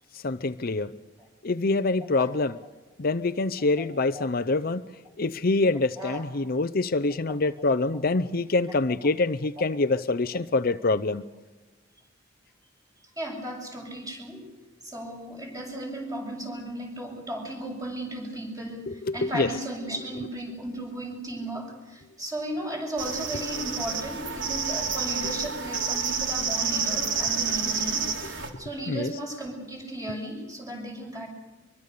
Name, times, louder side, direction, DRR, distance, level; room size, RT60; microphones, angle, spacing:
voice 1, 0.1-0.9 1.4-2.6 3.0-4.8 5.2-11.2 18.9-19.6 20.0-20.3 25.2-25.3 28.9-29.1, left 3 dB, 55° left, 12 dB, 0.7 m, -26 dB
voice 2, 13.2-14.5 14.8-31.3, right 1 dB, 20° right, 1 dB, 7.7 m, -35 dB
sound 1, 23.0-28.5, right 5 dB, 80° right, 3.5 m, -29 dB
25.0 x 23.5 x 6.8 m, 1.2 s
head